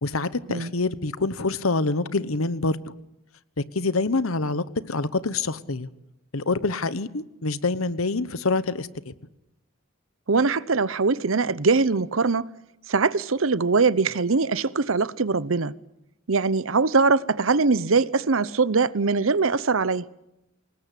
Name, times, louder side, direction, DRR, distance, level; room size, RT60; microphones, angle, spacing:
voice 1, 0.0-2.9 3.7-5.9 6.3-9.1, left 3 dB, 80° left, 1.2 m, -26 dB
voice 2, 10.3-12.5 12.9-15.7 16.3-20.0, right 4 dB, 70° right, 0.9 m, -22 dB
25.5 x 20.5 x 8.4 m
head